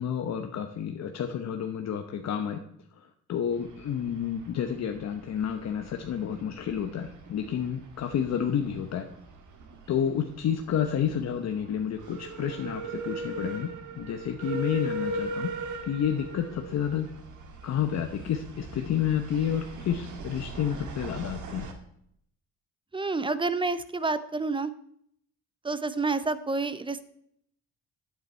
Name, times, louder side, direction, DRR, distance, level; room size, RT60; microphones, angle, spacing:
voice 1, 0.0-2.6 3.3-9.1 9.9-15.5 15.9-17.1 17.6-21.7, left 8 dB, 60° left, 5 dB, 0.9 m, -30 dB
sound 1, 3.5-21.7, right 2 dB, 80° right, 1.9 m, -40 dB
voice 2, 22.9-24.7 25.6-27.1, right 3 dB, 15° right, 13 dB, 0.7 m, -29 dB
9.5 x 9.2 x 4.4 m, 0.70 s
cardioid pair, 90°, 30 cm